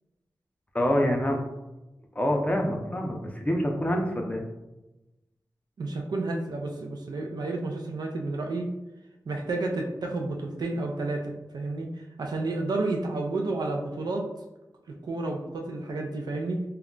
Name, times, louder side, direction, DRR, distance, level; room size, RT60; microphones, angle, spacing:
voice 1, 0.7-1.4 2.2-4.4, equal, 20° left, 2 dB, 0.5 m, -26 dB
voice 2, 5.8-8.7 9.3-14.3 15.0-16.6, right 2 dB, 75° right, 2 dB, 0.4 m, -31 dB
2.2 x 2.1 x 3.7 m, 1.0 s
wide cardioid pair, 80°, 7 cm